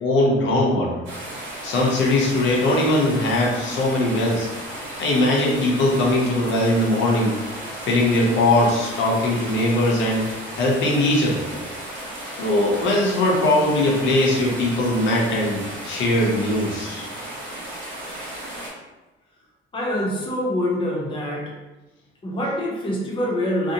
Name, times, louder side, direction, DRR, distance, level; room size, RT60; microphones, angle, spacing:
voice 1, 0.0-0.9 1.6-4.5 5.0-7.4 7.8-10.2 10.6-11.4 12.4-17.0, left 1 dB, 70° left, -2 dB, 0.7 m, -20 dB
sound 1, 1.0-18.7, right 1 dB, 75° right, 1.1 m, -35 dB
voice 2, 19.7-21.5 22.2-23.7, left 1 dB, 25° left, -3 dB, 0.6 m, -25 dB
2.6 x 2.1 x 2.7 m, 1.1 s
cardioid pair, 145°, 20 cm